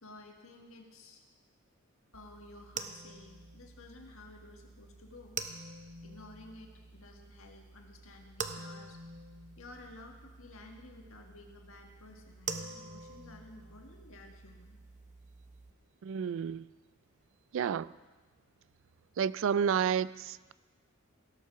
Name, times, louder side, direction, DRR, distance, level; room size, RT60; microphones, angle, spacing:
voice 1, 0.0-1.2 2.1-5.4 6.0-9.0 9.6-14.8, left 2 dB, 70° left, 1.7 m, -53 dB
sound 1, 2.1-15.7, right 4 dB, 35° right, 0.7 m, -46 dB
voice 2, 16.0-16.6 17.5-17.9 19.2-20.5, right 7 dB, 65° right, 0.3 m, -30 dB
17.0 x 7.4 x 5.9 m
head